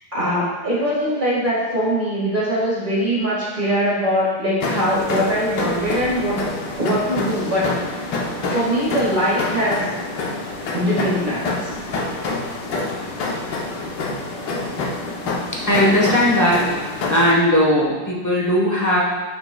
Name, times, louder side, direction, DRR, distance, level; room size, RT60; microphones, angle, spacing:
voice 1, 0.1-6.4 6.8-8.1 8.5-9.9 10.7-12.3 13.0-13.1 16.4-16.6, equal, 25° right, -7 dB, 1.8 m, -22 dB
sound 1, 4.6-17.3, left 2 dB, 60° left, 1.3 m, -27 dB
voice 2, 15.7-19.0, equal, 20° left, -4 dB, 0.5 m, -18 dB
9.9 x 6.2 x 2.3 m, 1.3 s
omnidirectional pair, 2.4 m